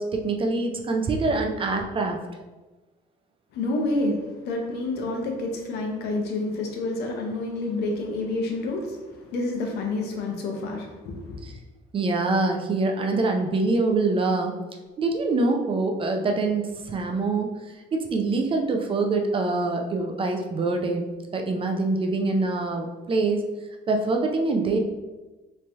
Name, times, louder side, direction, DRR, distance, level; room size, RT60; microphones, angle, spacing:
voice 1, 0.0-2.2 11.4-11.5 11.9-14.5 15.0-17.5 17.9-21.0 21.3-23.5 23.9-24.8, right 3 dB, 30° right, 3 dB, 0.4 m, -24 dB
voice 2, 3.5-11.4, left 2 dB, 75° left, 2 dB, 0.8 m, -29 dB
3.1 x 2.7 x 3.4 m, 1.2 s
cardioid pair, 110°, 17 cm